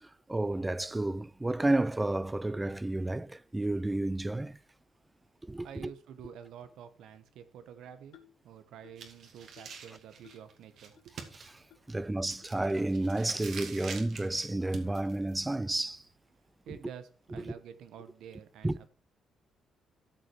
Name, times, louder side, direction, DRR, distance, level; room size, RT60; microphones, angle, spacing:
voice 1, 0.0-4.6 5.5-5.9 11.9-16.0 18.6-18.8, right 2 dB, 15° right, 0.4 m, -31 dB
voice 2, 5.6-8.2 8.4-10.9 16.6-18.9, right 9 dB, 80° right, 1.2 m, -49 dB
sound 1, 8.1-8.4 8.8-9.1 9.6-9.8 10.2-10.5 11.0-11.1 11.7-11.8 12.4-12.5 13.2-13.3 13.9-14.1, left 11 dB, 85° left, 1.6 m, -59 dB
sound 2, 9.0-16.1, right 6 dB, 65° right, 2.4 m, -47 dB
13.0 x 6.5 x 4.7 m
cardioid pair, 90°, 0 cm